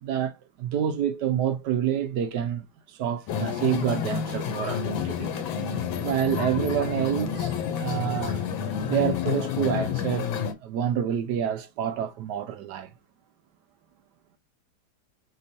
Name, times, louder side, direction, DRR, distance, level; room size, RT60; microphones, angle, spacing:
voice 1, 0.0-5.4 6.0-8.5 8.9-10.3 10.6-12.9, right 10 dB, 70° right, 1.1 m, -28 dB
sound 1, 3.3-10.5, left 8 dB, 85° left, 1.6 m, -29 dB
4.7 x 3.5 x 2.6 m
omnidirectional pair, 2.1 m